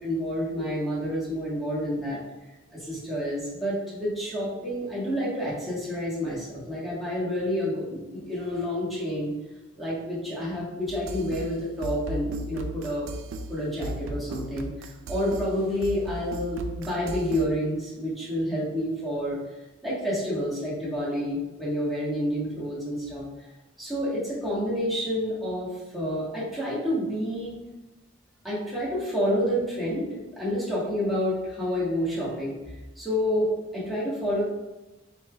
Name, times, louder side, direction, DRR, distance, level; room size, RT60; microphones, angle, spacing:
voice 1, 0.0-2.2 2.7-9.3 9.8-13.1 13.5-19.4 19.8-23.2 23.8-27.6 28.4-32.5 33.0-34.4, equal, ahead, -9 dB, 1.2 m, -29 dB
sound 1, 10.9-17.5, right 1 dB, 70° right, 0.4 m, -37 dB
4.6 x 3.2 x 2.3 m, 1.1 s
head